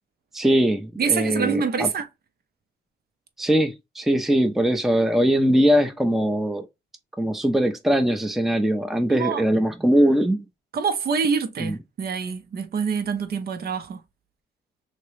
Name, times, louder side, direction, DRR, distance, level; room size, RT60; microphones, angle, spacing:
voice 1, 0.3-1.9 3.4-6.7 7.2-10.5 11.6-11.8, equal, ahead, 0.5 m, -21 dB
voice 2, 1.0-2.1 9.1-9.4 10.7-14.0, right 6 dB, 50° right, 0.7 m, -26 dB
2.9 x 2.9 x 3.1 m
cardioid pair, 90°, 20 cm